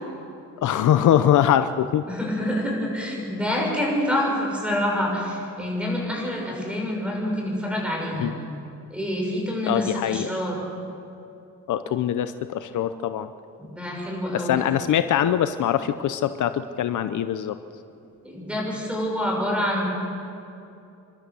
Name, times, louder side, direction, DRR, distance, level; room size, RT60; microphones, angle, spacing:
voice 1, 0.6-2.1 8.2-8.3 9.7-10.3 11.7-13.3 14.3-17.6, left 10 dB, 65° left, 11 dB, 0.8 m, -22 dB
voice 2, 2.1-8.3 8.9-10.6 13.6-14.6 18.2-19.9, left 1 dB, 5° right, -2 dB, 6.7 m, -27 dB
29.0 x 12.5 x 7.0 m, 2.7 s
cardioid pair, 115°, 33 cm